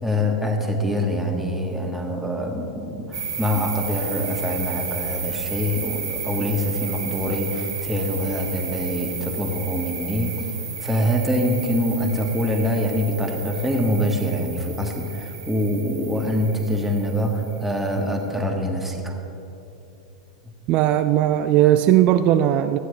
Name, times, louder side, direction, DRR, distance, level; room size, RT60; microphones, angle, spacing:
voice 1, 0.0-10.5 10.8-19.2, equal, 5° right, 1 dB, 1.4 m, -24 dB
sound 1, 3.1-18.1, right 6 dB, 70° right, 1.8 m, -33 dB
voice 2, 20.7-22.8, right 12 dB, 40° right, 10 dB, 0.3 m, -18 dB
14.5 x 9.2 x 3.3 m, 2.9 s
figure-of-eight pair, 95°, 3 cm